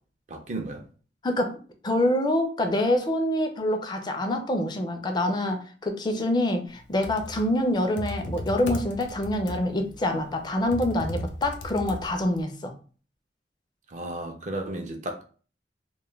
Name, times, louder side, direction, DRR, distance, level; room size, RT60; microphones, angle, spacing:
voice 1, 0.3-0.8 13.9-15.2, right 1 dB, 45° right, 0.4 m, -34 dB
voice 2, 1.2-1.6 1.8-12.7, left 1 dB, 25° left, 0.4 m, -26 dB
Computer keyboard, 6.8-12.4, left 1 dB, 90° left, 0.5 m, -36 dB
2.2 x 2.1 x 3.0 m
head